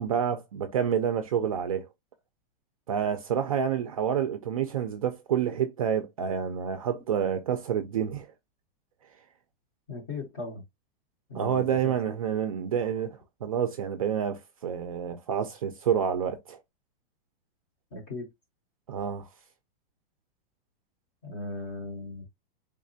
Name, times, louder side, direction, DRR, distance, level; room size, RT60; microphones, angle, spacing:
voice 1, 0.0-1.9 2.9-8.3 11.3-16.6 18.9-19.3, right 8 dB, 40° right, 0.4 m, -28 dB
voice 2, 9.9-10.6 11.3-11.9 17.9-18.3 21.2-22.3, left 2 dB, 20° left, 0.5 m, -37 dB
3.6 x 3.2 x 2.6 m
supercardioid pair, 180°, 29 cm